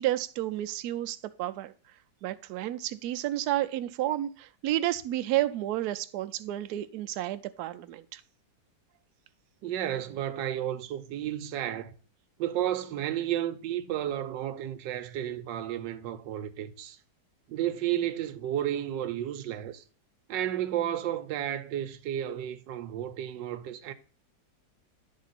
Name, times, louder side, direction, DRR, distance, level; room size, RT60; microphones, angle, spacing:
voice 1, 0.0-1.7 2.2-8.2, right 14 dB, 70° right, 1.0 m, -31 dB
voice 2, 9.6-11.9 12.4-17.0 17.5-19.8 20.3-23.9, right 11 dB, 90° right, 1.3 m, -32 dB
10.5 x 3.7 x 4.0 m
omnidirectional pair, 1.9 m